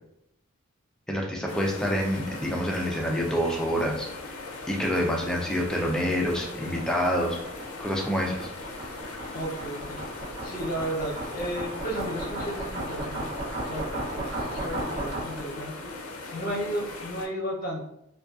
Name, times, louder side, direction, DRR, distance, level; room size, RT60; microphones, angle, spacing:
voice 1, 1.1-4.1 4.7-7.4 7.8-8.5, equal, 5° left, -1 dB, 0.3 m, -27 dB
sound 1, 1.5-17.3, left 3 dB, 80° left, 0.4 m, -39 dB
sound 2, 5.6-15.6, right 2 dB, 50° right, 0.7 m, -36 dB
voice 2, 9.3-10.0 10.4-13.2 13.7-14.3 14.6-15.9 16.3-17.8, equal, 45° left, -2 dB, 0.7 m, -33 dB
2.4 x 2.2 x 2.3 m, 0.80 s
head